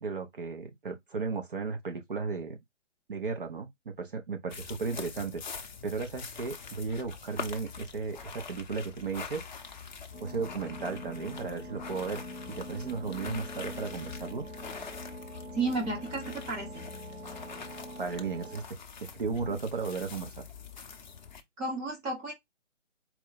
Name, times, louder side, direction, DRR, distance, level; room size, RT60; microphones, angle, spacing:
voice 1, 0.0-2.6 3.1-9.4 10.2-12.2 12.5-14.4 18.0-18.6 19.0-20.4, right 4 dB, 45° right, 0.7 m, -35 dB
sound 1, 4.5-21.4, left 5 dB, 40° left, 0.6 m, -44 dB
sound 2, 10.1-18.6, left 1 dB, 70° right, 2.7 m, -44 dB
voice 2, 15.5-16.8 21.6-22.3, right 3 dB, 10° right, 0.8 m, -32 dB
4.4 x 2.1 x 4.0 m
figure-of-eight pair, 135°, 37 cm